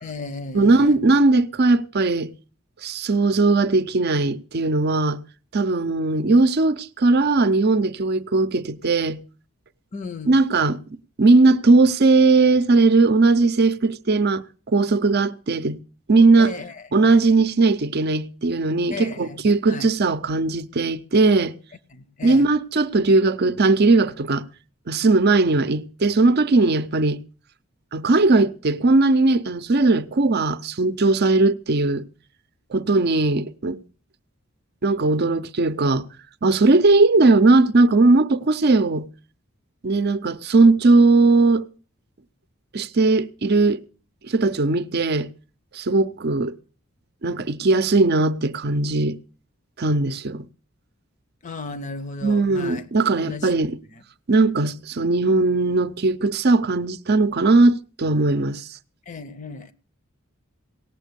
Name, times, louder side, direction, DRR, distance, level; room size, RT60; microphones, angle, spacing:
voice 1, 0.0-1.0 9.9-10.4 16.4-17.1 18.9-19.4 19.7-19.9 21.9-22.5 51.4-52.9 53.3-53.6 53.9-54.0 59.1-59.7, left 3 dB, 35° left, 0.7 m, -35 dB
voice 2, 0.5-2.3 2.8-5.2 5.5-9.2 10.2-10.8 11.2-15.8 16.1-16.5 16.9-21.6 22.2-24.5 24.9-27.2 27.9-32.0 32.7-33.8 34.8-36.1 36.4-39.1 39.8-41.7 42.7-43.8 44.3-45.3 45.7-46.6 47.2-49.2 49.8-50.5 52.2-53.7 54.3-58.7, right 3 dB, 50° right, 0.6 m, -18 dB
17.5 x 7.3 x 6.8 m
head